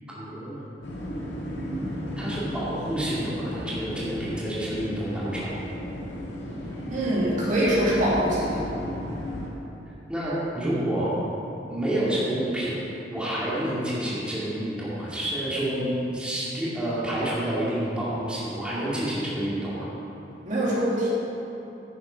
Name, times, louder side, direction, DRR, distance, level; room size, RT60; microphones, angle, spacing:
voice 1, 0.1-0.6 2.2-5.5 10.1-11.1 11.7-12.8 13.1-19.9, right 1 dB, 5° right, -9 dB, 2.6 m, -28 dB
sound 1, 0.8-9.5, equal, 90° left, 2.2 m, -34 dB
voice 2, 6.9-8.6 20.4-21.1, right 1 dB, 45° right, -7 dB, 2.4 m, -23 dB
10.0 x 8.3 x 5.8 m, 3.0 s
head